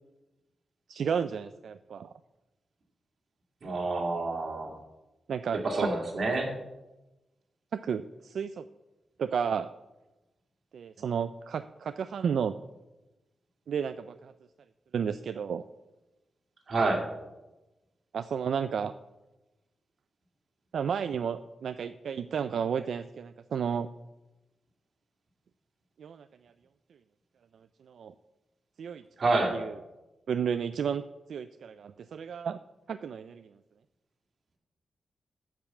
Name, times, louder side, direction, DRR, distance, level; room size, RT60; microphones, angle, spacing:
voice 1, 0.9-2.1 5.3-5.9 7.7-8.6 9.2-9.7 10.7-12.6 13.7-14.3 14.9-15.6 18.1-18.9 20.7-23.9 26.0-26.3 27.9-28.1 28.8-29.0 29.5-29.7 30.3-31.0 31.3-32.6 32.9-33.5, right 7 dB, 70° right, 12 dB, 0.3 m, -32 dB
voice 2, 3.6-4.7 5.6-6.5 16.7-17.0 29.2-29.5, right 3 dB, 50° right, 0 dB, 2.3 m, -28 dB
9.6 x 5.4 x 7.5 m, 1.0 s
wide cardioid pair, 145°, 0 cm